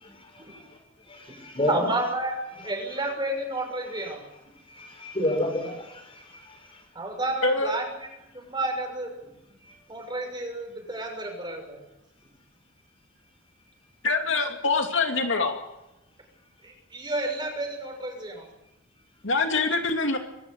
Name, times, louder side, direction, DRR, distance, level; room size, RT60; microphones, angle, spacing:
voice 1, 0.0-0.8 1.1-1.7 3.9-4.1 4.8-6.8, left 1 dB, 30° left, 5.6 m, -31 dB
voice 2, 1.7-2.4 2.6-4.2 6.9-7.9 8.3-9.1 9.9-11.8 16.6-18.4, right 2 dB, 25° right, 6.3 m, -31 dB
voice 3, 7.4-7.7 14.0-15.6 19.2-20.2, left 3 dB, 75° left, 2.5 m, -24 dB
24.5 x 13.5 x 9.6 m
head